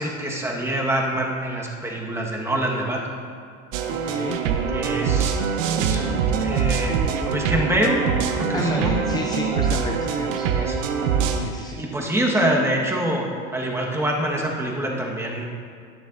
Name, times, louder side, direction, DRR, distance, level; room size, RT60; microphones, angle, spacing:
voice 1, 0.0-3.1 4.7-5.3 5.6-6.1 6.4-7.0 7.3-9.0 10.5-10.8 11.7-15.5, right 1 dB, 5° right, -2 dB, 1.4 m, -25 dB
sound 1, 3.7-11.4, right 6 dB, 70° right, 1.0 m, -23 dB
voice 2, 4.0-4.4 8.5-10.5 11.4-11.8, left 4 dB, 10° left, 2 dB, 0.3 m, -31 dB
20.5 x 6.9 x 2.6 m, 2.2 s
supercardioid pair, 125°, 39 cm